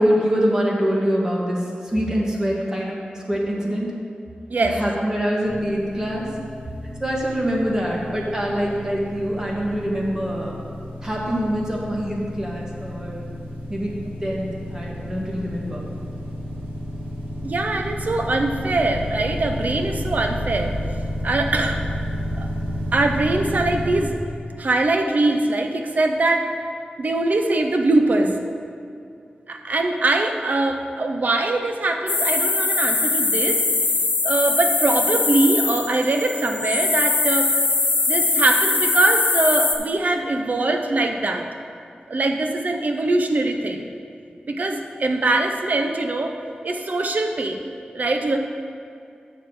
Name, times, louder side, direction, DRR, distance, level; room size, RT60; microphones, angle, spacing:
voice 1, 0.0-3.0 3.3-3.9 4.6-6.3 7.0-10.6 11.0-13.2 13.7-15.8, equal, 20° right, -3 dB, 1.5 m, -24 dB
sound 1, 5.4-24.0, equal, 85° right, 2.3 m, -31 dB
voice 2, 17.4-20.7 21.2-21.8 22.4-22.5 22.9-24.1 24.6-26.4 27.0-28.3 29.5-33.6 34.2-37.5 38.1-41.5 42.1-43.9 44.5-46.3 46.6-47.6 47.9-48.4, right 2 dB, 55° right, 4 dB, 0.7 m, -22 dB
sound 2, 32.1-39.7, left 3 dB, 60° left, 1.0 m, -21 dB
8.2 x 6.7 x 4.8 m, 2.5 s
wide cardioid pair, 115°, 3 cm